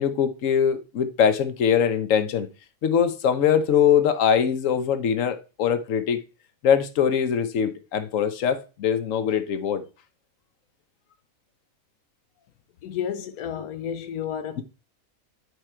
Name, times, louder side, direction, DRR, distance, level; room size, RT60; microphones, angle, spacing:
voice 1, 0.0-2.5 2.8-6.2 6.6-9.8 13.6-13.7, left 8 dB, 65° left, 1.2 m, -22 dB
voice 2, 12.8-14.6, left 9 dB, 85° left, 1.2 m, -31 dB
10.0 x 4.8 x 4.4 m
omnidirectional pair, 1.5 m